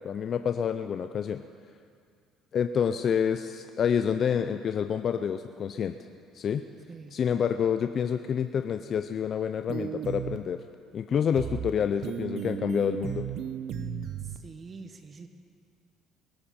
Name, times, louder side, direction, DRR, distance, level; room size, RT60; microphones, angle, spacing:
voice 1, 0.0-1.4 2.5-5.9 6.3-6.6 7.1-10.6 10.9-13.3, left 7 dB, 50° left, 8 dB, 0.5 m, -28 dB
voice 2, 6.9-7.2 14.2-15.3, right 4 dB, 40° right, 7 dB, 1.3 m, -45 dB
sound 1, 9.7-10.4 11.4-11.7 12.0-14.4, right 8 dB, 65° right, 0.9 m, -34 dB
21.0 x 13.0 x 4.4 m, 2.2 s
supercardioid pair, 85°, 0 cm